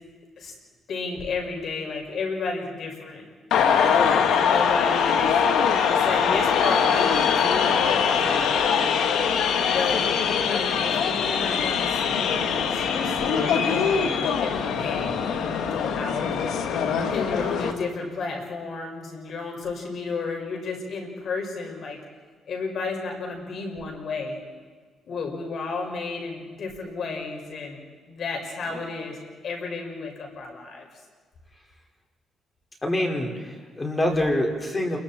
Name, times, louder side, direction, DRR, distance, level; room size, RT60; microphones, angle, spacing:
voice 1, 0.9-3.2 3.9-5.3 5.9-9.0 9.7-16.3 17.1-22.0 22.5-24.4 25.0-29.2 29.4-30.9, left 4 dB, 60° left, 1 dB, 5.8 m, -32 dB
sound 1, 3.5-17.7, left 7 dB, 80° left, 1.8 m, -22 dB
voice 2, 32.8-35.0, left 1 dB, 20° left, 1 dB, 4.8 m, -26 dB
29.5 x 22.5 x 4.4 m, 1.5 s
cardioid pair, 90°, 0 cm